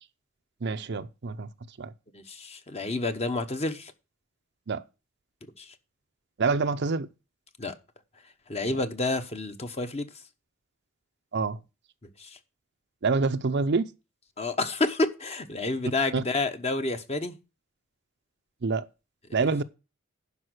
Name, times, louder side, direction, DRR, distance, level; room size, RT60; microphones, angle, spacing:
voice 1, 0.6-1.5 1.8-1.9 4.7-4.8 6.4-7.1 11.3-11.6 13.0-13.9 16.1-16.2 18.6-18.9 19.3-19.6, right 4 dB, 55° right, 0.6 m, -26 dB
voice 2, 2.1-3.9 5.6-5.7 7.6-7.7 8.5-10.1 12.2-12.3 14.4-17.4 19.4-19.5, left 2 dB, 30° left, 1.0 m, -29 dB
11.0 x 5.3 x 6.3 m
head